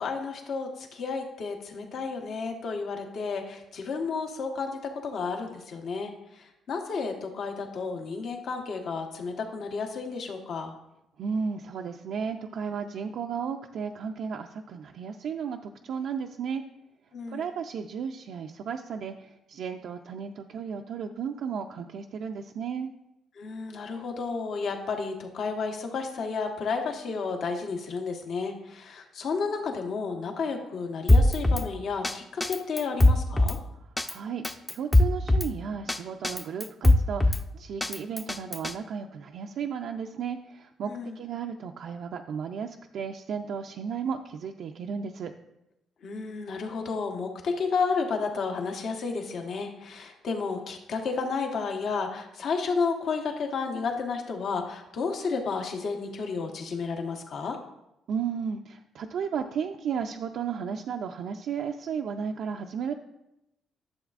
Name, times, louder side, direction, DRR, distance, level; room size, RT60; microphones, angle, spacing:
voice 1, 0.0-10.7 17.1-17.5 23.4-33.6 40.9-41.2 46.0-57.6, left 4 dB, 65° left, 3 dB, 1.2 m, -32 dB
voice 2, 11.2-16.6 17.3-22.9 34.1-45.3 58.1-62.9, right 6 dB, 70° right, 3 dB, 0.4 m, -34 dB
Drum kit, 31.1-31.7 32.0-32.1 32.4-33.6 34.0-34.1 34.4-35.5 35.9-36.0 36.2-37.4 37.8-38.7, left 1 dB, 15° left, 0.5 m, -21 dB
11.5 x 7.0 x 2.5 m, 0.87 s
cardioid pair, 90°, 0 cm